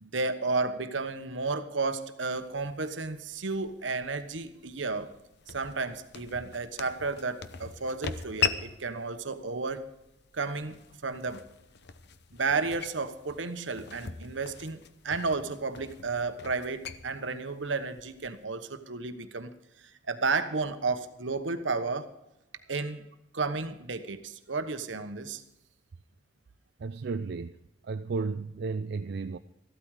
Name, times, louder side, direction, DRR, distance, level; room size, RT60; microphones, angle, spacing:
voice 1, 0.0-5.1 5.5-9.8 10.3-11.4 12.3-19.5 20.1-22.1 22.7-23.1 23.3-25.4, right 4 dB, 80° right, 1.2 m, -32 dB
sound 1, 2.3-18.4, left 6 dB, 65° left, 0.8 m, -40 dB
voice 2, 26.8-27.5 27.8-29.4, right 4 dB, 60° right, 0.5 m, -33 dB
14.5 x 12.5 x 4.9 m
head